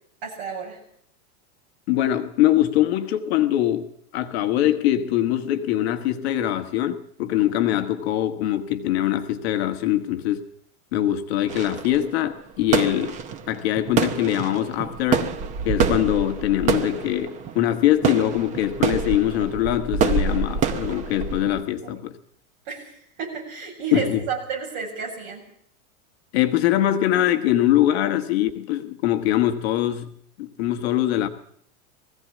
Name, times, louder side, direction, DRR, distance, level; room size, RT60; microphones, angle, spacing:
voice 1, 0.2-0.8 21.8-22.0 22.7-25.4, right 6 dB, 40° right, 1 dB, 7.5 m, -31 dB
voice 2, 1.9-3.9 4.1-10.4 10.9-13.2 13.5-15.3 15.6-22.1 23.9-24.2 26.3-30.1 30.4-31.3, left 12 dB, 45° left, 7 dB, 1.4 m, -22 dB
sound 1, 11.5-21.6, right 6 dB, 15° right, 0.8 m, -26 dB
20.5 x 16.0 x 8.4 m, 0.68 s
supercardioid pair, 170°, 44 cm